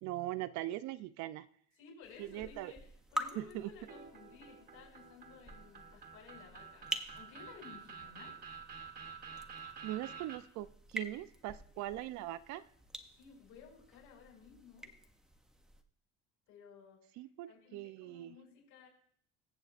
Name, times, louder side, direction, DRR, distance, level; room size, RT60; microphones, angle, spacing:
voice 1, 0.0-1.5 2.2-2.7 3.4-3.7 9.8-12.7 17.2-18.4, right 14 dB, 60° right, 14 dB, 0.5 m, -41 dB
voice 2, 1.8-2.8 3.1-8.4 11.7-11.8 13.1-14.9 16.5-17.0 17.5-18.9, left 6 dB, 70° left, -2 dB, 5.7 m, -56 dB
sound 1, 2.0-15.8, equal, ahead, 0.4 m, -47 dB
sound 2, 3.9-10.4, right 6 dB, 30° right, 1.0 m, -50 dB
22.0 x 7.8 x 2.5 m, 0.63 s
cardioid pair, 170°, 32 cm